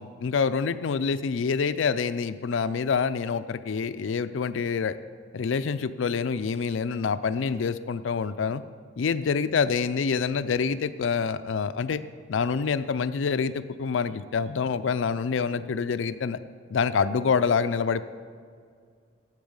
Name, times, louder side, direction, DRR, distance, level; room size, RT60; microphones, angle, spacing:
voice 1, 0.0-4.9 5.3-8.6 9.0-12.0 12.3-16.4 16.7-18.0, left 5 dB, 75° left, 12 dB, 0.4 m, -26 dB
10.5 x 8.0 x 5.5 m, 2.1 s
head